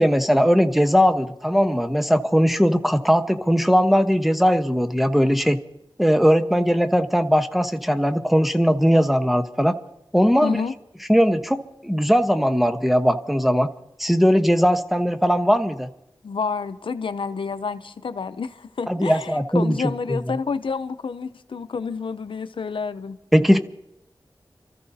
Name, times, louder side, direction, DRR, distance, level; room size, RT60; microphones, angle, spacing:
voice 1, 0.0-5.6 6.0-9.8 10.1-10.6 11.1-13.7 14.0-15.9 18.9-19.8 20.1-20.2 23.3-23.6, equal, ahead, 8 dB, 1.1 m, -19 dB
voice 2, 10.4-10.7 16.2-23.2, left 5 dB, 80° left, 10 dB, 0.7 m, -29 dB
29.5 x 14.5 x 2.8 m, 0.83 s
wide cardioid pair, 55°, 9 cm